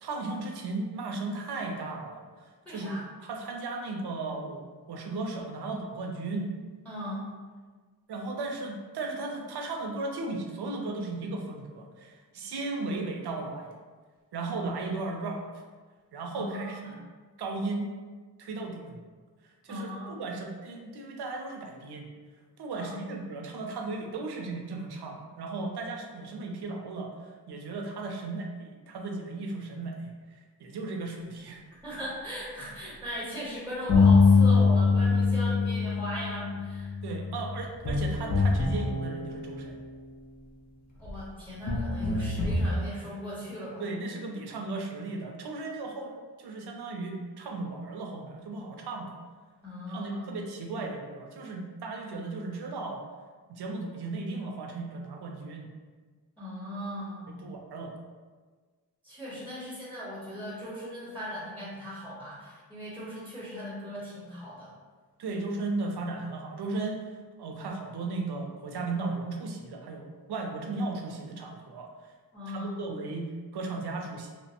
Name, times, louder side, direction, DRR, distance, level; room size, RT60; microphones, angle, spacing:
voice 1, 0.0-3.0 3.2-6.5 8.1-13.8 14.3-15.5 16.1-17.0 17.4-17.9 18.4-19.0 19.6-22.1 22.6-31.6 37.0-39.8 42.2-42.3 43.8-49.1 49.9-53.0 53.5-55.7 57.3-57.9 65.2-67.1 67.4-72.1 72.5-74.3, right 3 dB, 85° right, 2 dB, 0.5 m, -36 dB
voice 2, 2.6-3.0 6.8-7.3 16.3-17.0 19.7-20.2 22.7-23.1 31.8-36.9 41.0-43.9 49.6-50.3 56.4-57.3 59.0-64.7 72.3-72.8, equal, 5° left, -8 dB, 0.9 m, -38 dB
sound 1, 33.9-39.8 41.0-41.2 41.7-42.7, left 4 dB, 45° left, 0.6 m, -24 dB
2.9 x 2.1 x 2.8 m, 1.4 s
wide cardioid pair, 60°, 38 cm